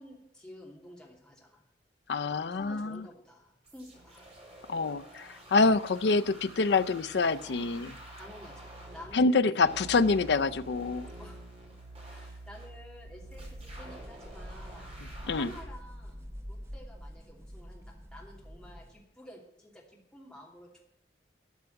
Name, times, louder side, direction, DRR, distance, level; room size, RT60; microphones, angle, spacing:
voice 1, 0.0-1.6 2.5-4.3 8.2-9.6 11.2-11.4 12.1-14.9 15.3-20.9, equal, 5° left, 2.7 m, -51 dB
voice 2, 2.1-3.0 4.7-7.9 9.1-11.1 15.3-15.5, left 3 dB, 70° left, 0.5 m, -26 dB
sound 1, 3.6-9.1 9.6-15.6, right 1 dB, 35° right, 4.3 m, -47 dB
sound 2, 13.0-19.0, equal, 15° right, 0.7 m, -46 dB
13.0 x 5.9 x 9.0 m
head